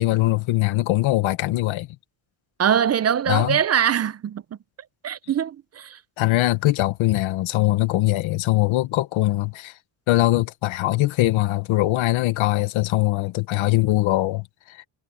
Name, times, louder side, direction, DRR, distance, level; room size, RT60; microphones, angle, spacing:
voice 1, 0.0-1.9 3.3-3.6 6.2-9.7 10.1-14.8, left 17 dB, 90° left, 1.3 m, -21 dB
voice 2, 2.6-4.4 5.0-6.0, right 8 dB, 35° right, 0.5 m, -22 dB
cardioid pair, 125°, 46 cm